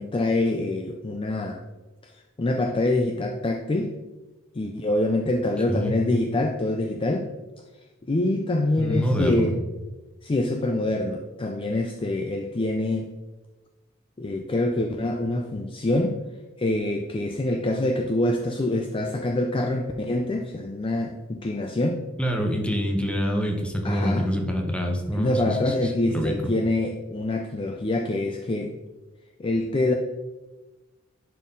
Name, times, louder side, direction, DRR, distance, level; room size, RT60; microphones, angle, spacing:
voice 1, 0.0-1.6 2.0-2.1 2.4-4.0 4.5-7.3 8.1-9.6 10.2-13.1 14.2-16.2 16.6-22.0 23.8-24.3 25.1-28.8 29.4-29.9, left 2 dB, 25° left, 3 dB, 0.4 m, -25 dB
voice 2, 8.8-9.5 22.2-26.5, equal, 5° left, 2 dB, 1.0 m, -26 dB
11.0 x 4.1 x 3.8 m, 1.1 s
head